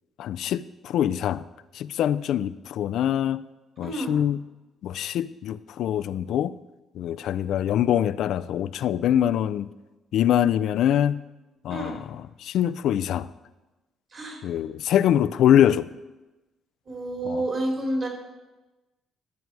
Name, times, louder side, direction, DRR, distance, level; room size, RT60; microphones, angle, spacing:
voice 1, 0.2-1.4 1.7-3.4 3.8-4.4 4.8-6.5 7.0-9.7 10.1-11.2 11.6-13.3 14.4-15.9 17.3-17.4, left 10 dB, 80° left, 0.3 m, -24 dB
voice 2, 3.8-4.1 11.7-11.9 14.1-14.4 16.8-18.1, right 1 dB, 45° right, 3.3 m, -29 dB
12.0 x 7.6 x 4.7 m
cardioid pair, 90°, 0 cm